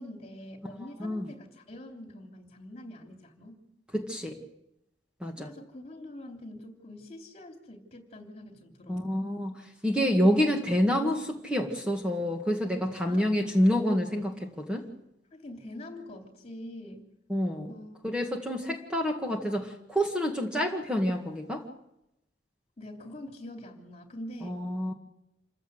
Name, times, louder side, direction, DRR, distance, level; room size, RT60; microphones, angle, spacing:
voice 1, 0.0-3.6 5.4-9.1 13.0-13.5 15.3-17.1 17.7-18.1 22.8-24.6, left 1 dB, 35° left, 3 dB, 3.3 m, -45 dB
voice 2, 3.9-4.4 5.2-5.5 8.9-9.5 9.8-14.8 17.3-17.7 18.0-21.6 24.4-24.9, equal, 5° right, 1 dB, 1.9 m, -27 dB
27.5 x 15.5 x 8.1 m, 0.87 s
head